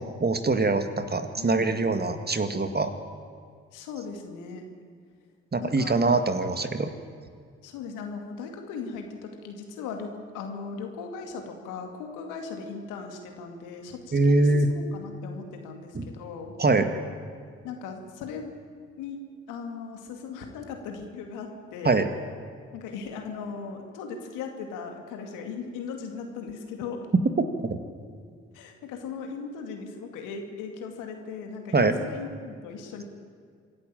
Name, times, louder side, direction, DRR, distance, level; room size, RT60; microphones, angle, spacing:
voice 1, 0.0-2.9 5.5-6.9 14.1-14.7 15.9-16.1 16.6-16.9 21.8-22.1 31.7-31.9, right 3 dB, 30° right, 8 dB, 1.9 m, -23 dB
voice 2, 1.3-1.8 3.7-4.6 5.6-5.9 7.6-16.5 17.6-18.5 19.0-22.0 22.7-27.1 28.5-33.0, left 5 dB, 75° left, 4 dB, 2.4 m, -38 dB
26.0 x 11.0 x 9.0 m, 2.1 s
hypercardioid pair, 40°, 31 cm